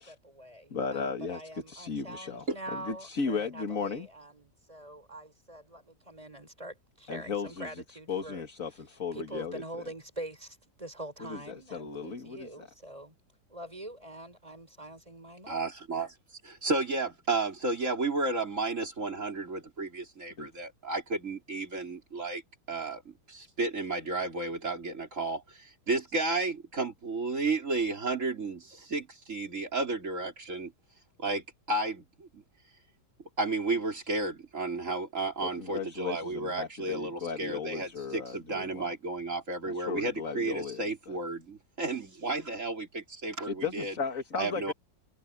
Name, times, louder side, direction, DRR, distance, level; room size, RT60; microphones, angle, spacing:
voice 1, 0.0-8.4 9.1-13.1 13.5-15.6, right 1 dB, 20° right, 6.4 m, -44 dB
voice 2, 0.7-4.1 7.1-9.9 11.2-12.7 20.4-20.5 35.6-38.9 39.7-41.2 43.5-44.7, left 5 dB, 50° left, 2.3 m, -36 dB
voice 3, 15.5-16.1 16.4-22.4 22.7-23.0 23.3-30.7 31.2-32.4 33.4-43.9 44.4-44.7, right 3 dB, 45° right, 3.9 m, -32 dB
omnidirectional pair, 1.9 m